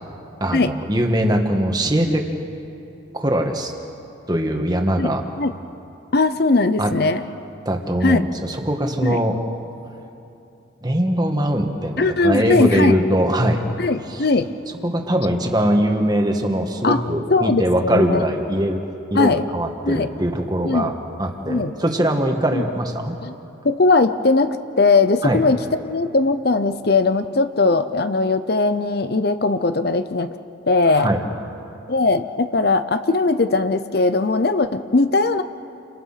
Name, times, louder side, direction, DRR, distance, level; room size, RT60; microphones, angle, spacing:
voice 1, 0.4-2.3 3.1-3.7 4.3-5.2 6.8-7.0 7.6-9.4 10.8-13.6 14.1-14.3 14.8-18.8 19.1-20.9 21.2-23.2 25.2-25.4 30.9-31.2, equal, 20° right, 3 dB, 1.7 m, -21 dB
voice 2, 5.0-5.5 6.1-7.2 8.0-8.2 9.0-9.2 12.0-13.0 13.8-14.5 16.8-17.0 17.3-18.2 19.1-19.4 19.8-20.1 20.6-20.9 21.5-21.7 22.5-22.6 23.2-23.3 23.6-25.6 25.8-30.3 30.7-31.1 31.9-35.4, left 3 dB, 50° left, 11 dB, 0.7 m, -19 dB
29.5 x 26.0 x 5.8 m, 2.8 s
head